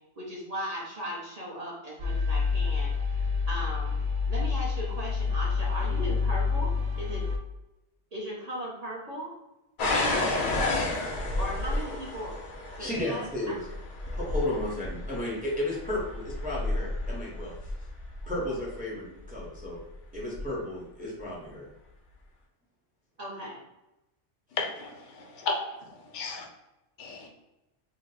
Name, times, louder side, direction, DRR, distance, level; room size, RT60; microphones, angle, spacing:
voice 1, 0.2-3.9 4.3-7.2 8.1-9.3 9.9-10.6 11.4-12.3 12.8-13.5 23.2-23.6, equal, 40° right, -5 dB, 0.8 m, -38 dB
sound 1, 2.0-7.4, left 5 dB, 65° right, 0.3 m, -28 dB
sound 2, 9.8-18.6 19.3-19.8 20.3-20.5, left 2 dB, 55° left, 0.6 m, -31 dB
voice 2, 12.8-13.6 14.1-17.6 18.2-19.8 20.1-21.7, left 1 dB, 10° right, -4 dB, 0.6 m, -33 dB
voice 3, 24.6-25.5 26.1-26.5 27.0-27.3, left 4 dB, 80° left, 3 dB, 0.9 m, -33 dB
2.7 x 2.1 x 3.9 m, 0.97 s
omnidirectional pair, 1.2 m